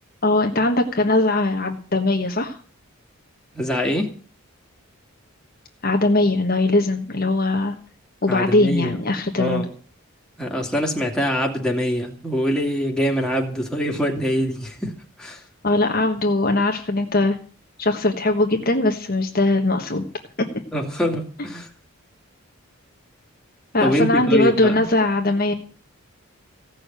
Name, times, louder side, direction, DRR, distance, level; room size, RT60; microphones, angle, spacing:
voice 1, 0.2-2.6 5.8-7.7 8.2-9.6 15.6-17.4 17.8-20.1 20.4-20.5 23.7-25.5, left 2 dB, 40° left, 1.4 m, -20 dB
voice 2, 3.5-4.1 8.3-9.0 9.3-9.7 10.4-15.4 20.7-21.7 23.8-24.9, equal, 5° left, 2.4 m, -24 dB
16.0 x 6.6 x 9.1 m
head